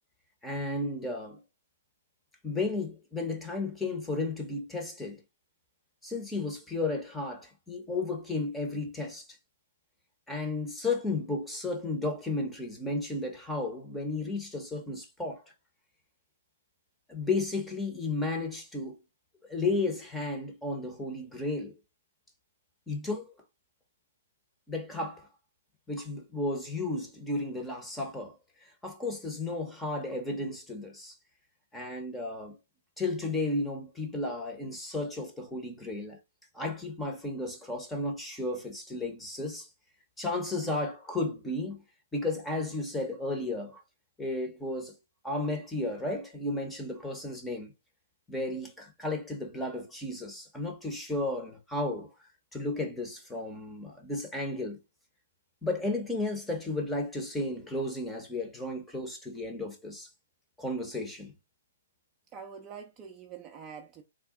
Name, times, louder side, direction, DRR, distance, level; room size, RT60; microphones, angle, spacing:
voice 1, 0.4-1.4 2.4-5.2 6.0-9.3 10.3-15.4 17.1-19.0 19.5-21.7 22.9-23.3 24.7-25.3 25.9-31.2 31.7-32.6 33.0-36.2 36.5-39.7 40.2-41.8 42.1-43.8 44.2-44.9 45.2-47.7 48.3-52.1 52.5-54.8 55.6-60.1 60.6-61.3, left 2 dB, 5° left, 0.8 m, -33 dB
voice 2, 62.3-64.0, right 6 dB, 20° right, 0.5 m, -45 dB
3.5 x 2.2 x 3.6 m
hypercardioid pair, 150°, 0 cm